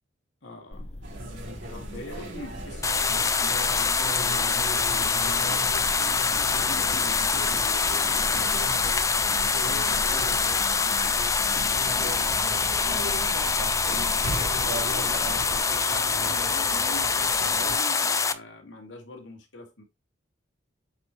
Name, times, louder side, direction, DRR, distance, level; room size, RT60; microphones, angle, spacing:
voice 1, 0.4-0.9 1.7-5.6 6.1-9.1 9.5-15.2 15.7-19.8, left 2 dB, 75° left, 2.5 m, -43 dB
sound 1, 0.7-15.6, left 1 dB, 35° left, 0.9 m, -40 dB
sound 2, 1.0-17.8, right 1 dB, 70° right, 4.3 m, -38 dB
sound 3, 2.8-18.3, left 5 dB, 15° left, 0.5 m, -25 dB
8.1 x 4.5 x 3.1 m
head